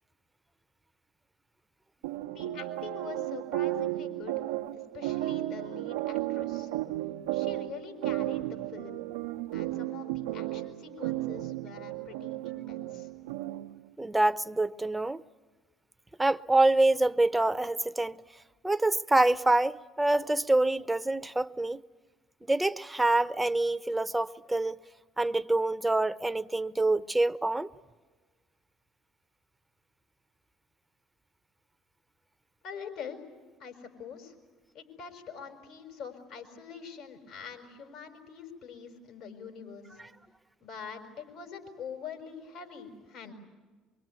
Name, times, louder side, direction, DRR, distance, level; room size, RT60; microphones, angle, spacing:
sound 1, 2.0-13.8, right 15 dB, 85° right, 0.9 m, -34 dB
voice 1, 2.3-4.3 4.7-6.7 7.3-9.0 9.5-13.1 32.6-33.2 33.6-34.3 34.7-40.0 40.6-43.3, left 6 dB, 70° left, 5.7 m, -44 dB
voice 2, 14.0-15.2 16.2-18.2 18.6-21.8 22.5-24.8 25.2-27.7, right 2 dB, 10° right, 0.9 m, -26 dB
24.5 x 23.5 x 9.5 m
hypercardioid pair, 60°, 0 cm